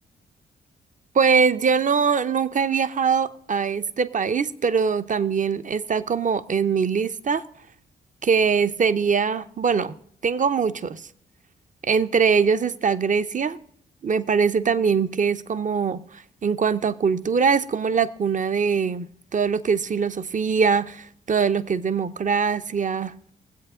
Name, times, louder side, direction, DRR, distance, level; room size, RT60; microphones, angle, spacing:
voice 1, 1.1-7.4 8.2-9.9 10.2-11.0 11.8-13.6 14.0-23.1, right 6 dB, 40° right, 0.7 m, -22 dB
21.5 x 8.1 x 3.7 m
hypercardioid pair, 45°, 20 cm